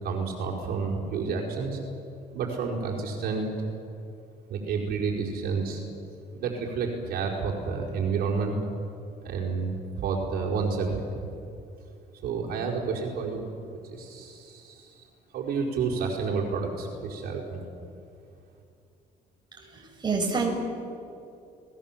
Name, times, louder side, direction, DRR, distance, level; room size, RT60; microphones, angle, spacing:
voice 1, 0.0-1.8 2.3-3.5 4.5-5.8 6.3-8.6 9.2-11.3 12.2-15.0 15.3-17.6, right 5 dB, 65° right, -2 dB, 4.9 m, -30 dB
voice 2, 19.5-20.5, right 4 dB, 25° right, 1 dB, 6.0 m, -28 dB
29.5 x 20.0 x 7.6 m, 2.6 s
cardioid pair, 110°, 17 cm